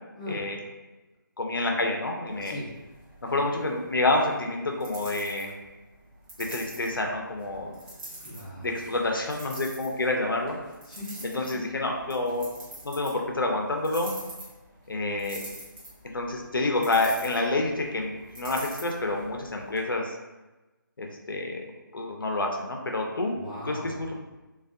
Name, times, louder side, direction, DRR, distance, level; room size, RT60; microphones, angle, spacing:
voice 1, 0.1-0.5 2.4-2.8 8.2-8.8 10.9-11.6 23.3-24.1, left 1 dB, 20° left, -6 dB, 0.4 m, -39 dB
voice 2, 1.4-2.5 3.2-5.5 6.4-7.7 8.6-10.6 11.3-12.5 12.8-14.2 14.9-15.4 16.1-20.1 21.0-21.6 21.9-23.3 23.6-24.2, left 2 dB, 75° left, 1 dB, 0.5 m, -28 dB
sound 1, 2.3-19.8, right 1 dB, 20° right, 0.6 m, -46 dB
2.4 x 2.2 x 2.3 m, 1.1 s
figure-of-eight pair, 150°, 11 cm